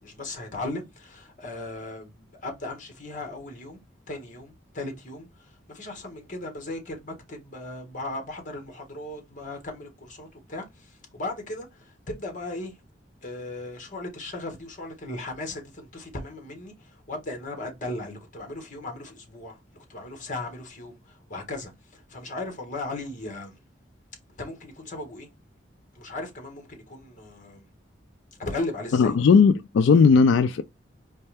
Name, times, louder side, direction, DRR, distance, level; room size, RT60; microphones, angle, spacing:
voice 1, 0.0-3.8 4.1-12.8 13.2-19.6 19.9-23.6 24.4-25.3 25.9-27.6 28.4-29.1, left 2 dB, 45° left, 1.6 m, -37 dB
voice 2, 28.9-30.6, left 5 dB, 85° left, 0.3 m, -17 dB
4.4 x 3.2 x 3.4 m
head